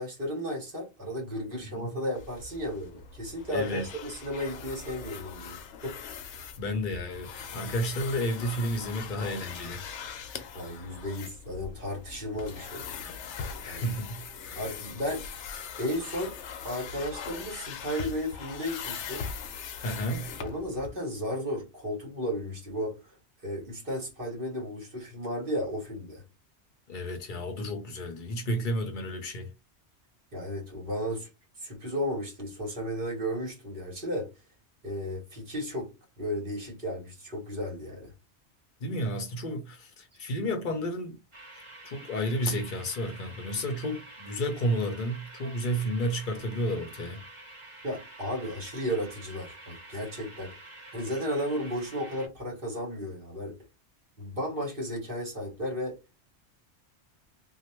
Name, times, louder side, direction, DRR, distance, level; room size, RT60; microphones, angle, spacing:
voice 1, 0.0-6.0 10.5-12.9 13.6-13.9 14.5-15.3 15.8-16.3 16.6-19.3 20.4-23.1 23.4-26.2 30.3-31.3 31.6-34.3 34.8-35.9 36.2-38.1 47.8-50.5 50.9-53.6 54.2-56.0, equal, 50° right, 1.5 m, -34 dB
sound 1, 2.1-20.9, left 6 dB, 85° left, 0.9 m, -41 dB
voice 2, 3.5-3.9 6.6-9.8 13.6-14.1 19.8-20.3 26.9-29.5 38.8-41.2 41.8-47.2, equal, 55° left, 0.7 m, -31 dB
sound 2, 41.3-52.3, right 2 dB, 30° right, 1.2 m, -48 dB
3.0 x 2.1 x 2.9 m
omnidirectional pair, 1.2 m